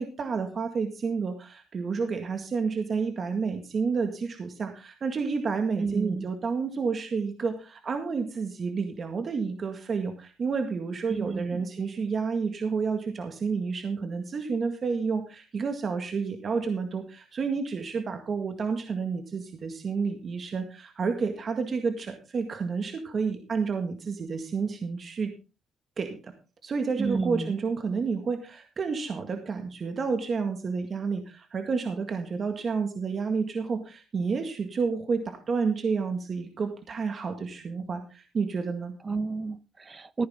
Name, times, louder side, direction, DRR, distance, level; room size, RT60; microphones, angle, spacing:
voice 1, 0.0-25.3 26.0-26.3 26.6-39.0, right 5 dB, 45° right, 6 dB, 1.9 m, -30 dB
voice 2, 5.8-6.3 11.1-11.6 27.0-27.5 39.0-40.3, right 4 dB, 30° right, 16 dB, 0.7 m, -31 dB
15.0 x 9.9 x 3.7 m, 0.31 s
cardioid pair, 90°, 0 cm